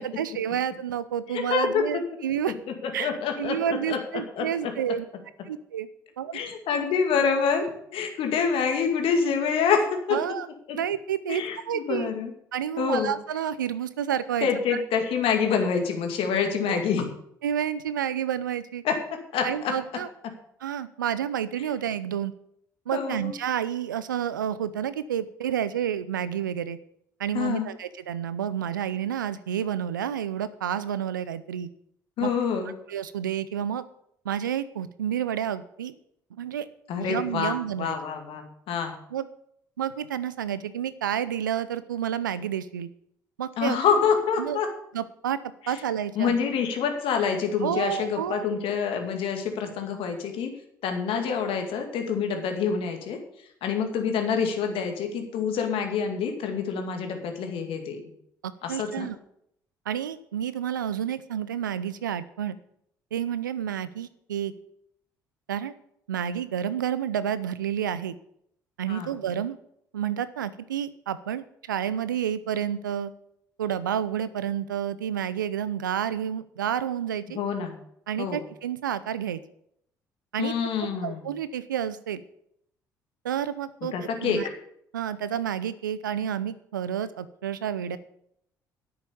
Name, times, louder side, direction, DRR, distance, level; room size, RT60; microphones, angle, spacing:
voice 1, 0.0-2.5 2.9-3.1 3.4-5.0 5.5-5.9 6.2-6.4 10.1-10.5 10.7-12.1 12.5-14.8 16.7-16.8 17.4-18.8 19.4-20.1 20.6-22.3 22.9-26.8 27.2-31.7 32.2-32.3 32.9-33.8 34.2-35.9 36.4-36.7 37.0-38.0 39.1-39.3 39.8-42.9 43.4-43.8 44.4-44.6 44.9-45.4 45.7-46.4 47.6-48.5 58.4-59.2 59.9-62.6 63.1-64.5 65.5-65.7 66.1-68.1 68.8-69.6 69.9-73.1 73.6-77.4 78.1-79.4 80.3-80.5 81.0-82.2 83.2-83.9 84.2-84.5 84.9-88.0, right 9 dB, 85° right, 15 dB, 0.6 m, -30 dB
voice 2, 1.3-1.8 2.8-4.0 4.4-4.7 6.3-7.7 7.9-10.2 10.7-10.8 11.3-12.3 12.8-13.2 14.4-17.1 18.8-19.7 22.9-23.3 27.3-27.7 32.2-32.7 36.9-38.9 43.6-44.7 45.6-45.8 46.2-50.5 50.8-53.2 53.6-58.1 58.6-59.1 68.9-69.1 77.3-77.8 78.2-78.4 80.4-81.3 83.9-84.4, left 6 dB, 60° left, 4 dB, 2.3 m, -27 dB
10.0 x 8.8 x 6.8 m, 0.73 s
hypercardioid pair, 50°, 10 cm